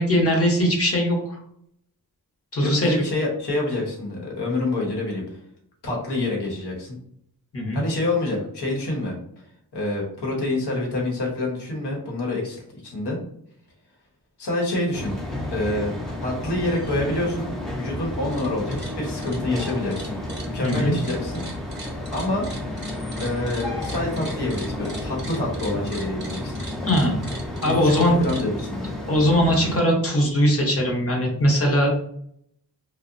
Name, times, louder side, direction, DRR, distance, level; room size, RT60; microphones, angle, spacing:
voice 1, 0.0-1.4 2.5-2.9 7.5-7.8 20.6-20.9 26.8-27.1 27.6-28.1 29.1-31.9, equal, 35° left, -1 dB, 0.8 m, -20 dB
voice 2, 2.6-5.2 5.8-7.0 7.7-9.2 9.7-13.2 14.4-15.1 15.5-15.9 16.2-17.5 17.7-21.4 22.1-22.5 23.2-26.5 27.6-28.9, left 2 dB, 80° left, -2 dB, 1.0 m, -27 dB
sound 1, 14.9-29.8, left 1 dB, ahead, 0.5 m, -32 dB
sound 2, 18.1-18.5 18.7-28.4, right 2 dB, 25° right, 0.8 m, -40 dB
2.7 x 2.1 x 2.5 m, 0.68 s
wide cardioid pair, 90°, 39 cm